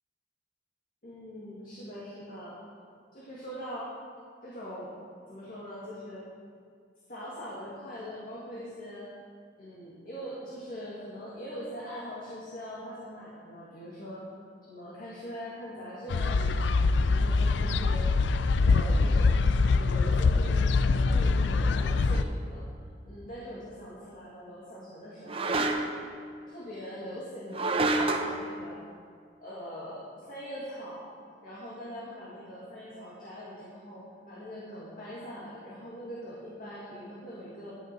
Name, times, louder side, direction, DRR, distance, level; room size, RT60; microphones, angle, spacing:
voice 1, 1.0-2.6 3.1-3.9 4.4-4.9 5.3-6.2 7.1-9.1 9.6-14.2 14.7-16.7 17.1-18.1 18.6-22.7 23.1-25.9 26.5-28.8 29.4-31.1 31.4-37.7, equal, 45° left, -7 dB, 1.9 m, -42 dB
sound 1, 16.1-22.2, left 4 dB, 70° left, 0.4 m, -24 dB
sound 2, 22.1-22.3 25.3-26.1 27.5-28.4, right 2 dB, 30° right, 0.6 m, -28 dB
10.5 x 9.4 x 4.5 m, 2.1 s
head